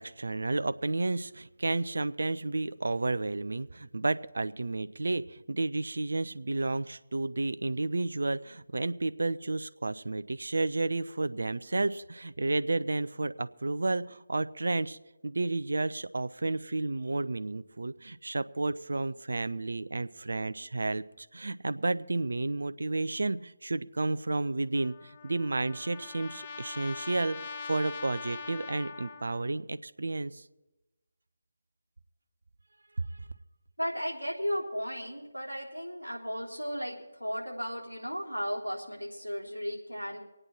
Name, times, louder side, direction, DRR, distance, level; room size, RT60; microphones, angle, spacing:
voice 1, 0.0-15.0 15.2-27.4 27.7-30.4 33.0-33.1, right 2 dB, 65° right, 13 dB, 0.5 m, -31 dB
Trumpet, 24.7-29.6, left 5 dB, 30° left, 0.8 m, -43 dB
voice 2, 33.8-40.2, equal, 85° right, -1 dB, 3.2 m, -35 dB
24.5 x 8.8 x 4.4 m, 1.0 s
figure-of-eight pair, 150°, 0 cm